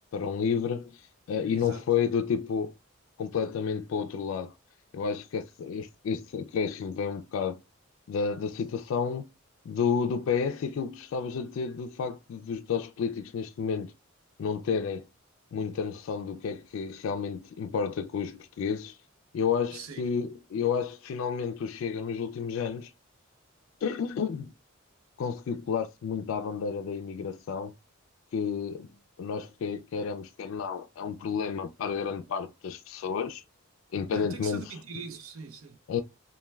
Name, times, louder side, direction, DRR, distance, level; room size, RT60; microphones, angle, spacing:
voice 1, 0.1-1.0 1.3-2.7 3.2-4.5 4.9-7.6 8.1-9.3 9.7-13.9 14.4-15.1 15.5-18.9 19.3-22.9 23.8-24.5 25.2-27.7 28.3-33.4 33.9-34.7 35.9-36.0, left 6 dB, 70° left, 0.3 m, -31 dB
voice 2, 1.5-1.8 19.7-20.0 34.1-35.8, right 5 dB, 80° right, 0.5 m, -42 dB
2.2 x 2.2 x 3.1 m
head